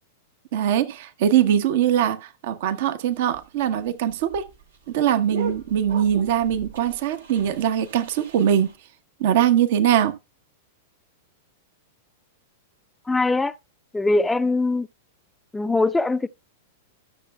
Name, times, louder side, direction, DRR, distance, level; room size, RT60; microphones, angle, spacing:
voice 1, 0.5-4.5 4.9-8.7 9.2-10.2, right 10 dB, 55° right, 0.9 m, -22 dB
sound 1, 3.1-8.8, right 4 dB, 70° right, 1.6 m, -39 dB
voice 2, 13.1-13.6 13.9-14.9 15.5-16.3, left 2 dB, 10° left, 0.4 m, -21 dB
13.0 x 6.8 x 2.2 m
figure-of-eight pair, 95°, 0 cm